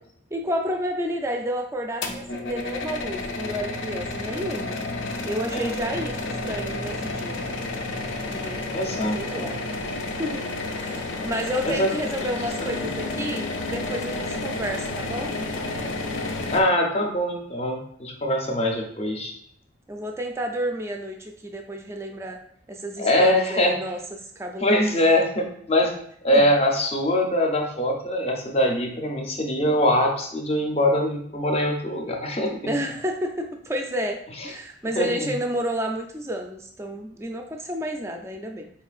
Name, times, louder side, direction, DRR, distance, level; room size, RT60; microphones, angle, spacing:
voice 1, 0.3-4.8 5.2-7.4 8.3-8.6 9.1-9.6 10.2-10.5 10.7-15.3 19.9-22.4 22.7-24.8 26.3-26.5 32.6-38.7, equal, 15° right, 3 dB, 0.3 m, -30 dB
sound 1, 2.0-16.6, left 2 dB, 75° left, 0.5 m, -31 dB
voice 2, 8.7-9.5 11.6-11.9 12.2-12.3 12.6-12.9 16.5-19.3 23.0-23.7 24.6-25.9 26.2-32.7 35.0-35.3, left 1 dB, 30° left, 2 dB, 0.6 m, -23 dB
4.4 x 3.1 x 2.4 m, 0.68 s
head